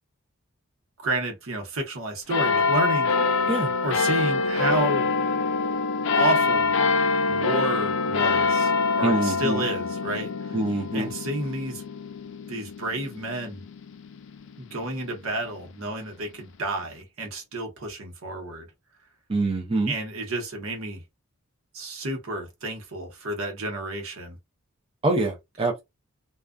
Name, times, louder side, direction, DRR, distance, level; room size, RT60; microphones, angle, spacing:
voice 1, 1.0-3.1 3.8-5.1 6.1-6.7 7.3-10.6 10.9-11.8 12.5-13.6 14.6-18.7 19.9-21.0 21.7-24.4, right 1 dB, 80° right, 0.9 m, -30 dB
sound 1, 2.3-15.2 15.8-15.9, left 4 dB, 60° left, 0.4 m, -25 dB
voice 2, 9.0-9.7 10.5-11.1 19.3-19.9 25.0-25.8, right 2 dB, 25° right, 0.4 m, -25 dB
2.4 x 2.3 x 2.2 m
head